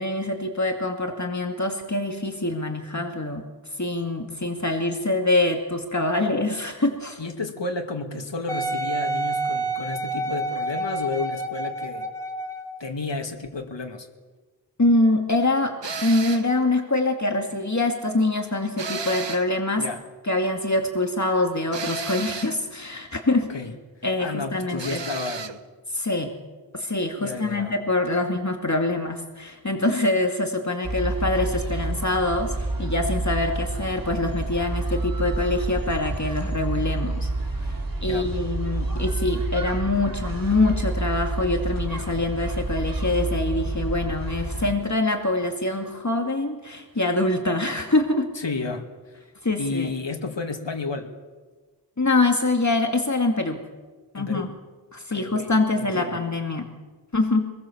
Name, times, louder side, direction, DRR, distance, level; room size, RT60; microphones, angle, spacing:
voice 1, 0.0-3.4 3.8-7.2 14.8-15.7 16.0-19.9 20.2-23.5 24.0-25.0 25.9-26.3 26.7-32.5 32.8-37.3 37.6-37.7 38.0-48.3 49.4-49.9 52.0-53.6 54.1-54.5 54.9-56.6 57.1-57.4, left 2 dB, 40° left, 3 dB, 2.4 m, -24 dB
voice 2, 7.2-12.1 12.8-14.1 19.8-20.0 23.5-23.7 24.2-25.6 27.2-27.7 38.0-38.3 48.3-49.3 49.6-51.1 54.1-54.5 55.1-56.2, left 3 dB, 75° left, 3 dB, 2.4 m, -32 dB
Wind instrument woodwind instrument, 8.5-12.8 13.5-13.6, right 2 dB, 10° left, 4.0 m, -28 dB
sound 1, 15.8-16.5 18.8-19.6 21.7-22.6 24.8-25.6, right 5 dB, 75° right, 1.3 m, -33 dB
sound 2, 30.8-44.7, right 2 dB, 50° right, 3.1 m, -28 dB
26.5 x 21.0 x 7.2 m, 1.3 s
wide cardioid pair, 60°, 44 cm